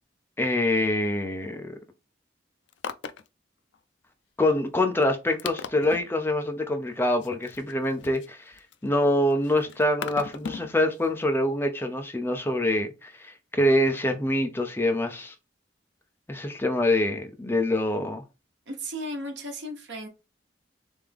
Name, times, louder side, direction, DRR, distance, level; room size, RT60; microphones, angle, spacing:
voice 1, 0.4-1.7 4.4-8.5 8.8-15.3 16.3-18.2, left 1 dB, 10° left, 0.6 m, -25 dB
sound 1, 2.7-3.3 3.7-3.8 4.4-4.5 5.0-5.1 5.4-6.0 7.2-8.9 9.3-10.7 11.0-11.1, left 6 dB, 75° left, 0.4 m, -37 dB
voice 2, 18.7-20.1, equal, 70° right, 1.2 m, -35 dB
3.5 x 3.4 x 3.4 m
head